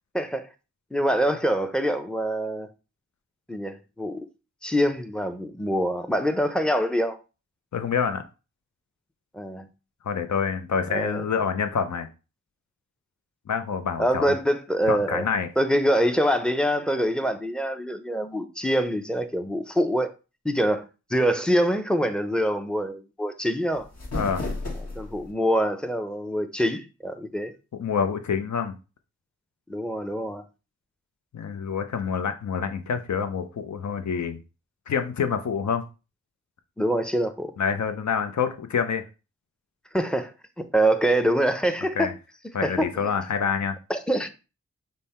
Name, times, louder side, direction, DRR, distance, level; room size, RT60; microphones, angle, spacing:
voice 1, 0.1-0.5 0.9-2.7 3.5-4.2 4.6-7.2 9.3-9.7 10.9-11.2 14.0-15.3 15.6-20.1 20.4-20.8 21.1-23.9 25.0-27.5 29.7-30.4 36.8-37.5 39.9-40.3 40.6-42.1 42.6-43.1 43.9-44.3, equal, 5° left, 0.5 m, -25 dB
voice 2, 7.7-8.2 10.0-12.1 13.5-14.3 14.9-15.5 24.1-24.4 27.7-28.7 31.3-34.4 34.9-35.8 37.6-39.0 42.0-42.1 42.5-43.8, left 6 dB, 70° left, 0.6 m, -27 dB
sound 1, 23.7-25.3, left 2 dB, 55° left, 1.3 m, -33 dB
5.3 x 2.1 x 4.2 m
wide cardioid pair, 75°, 29 cm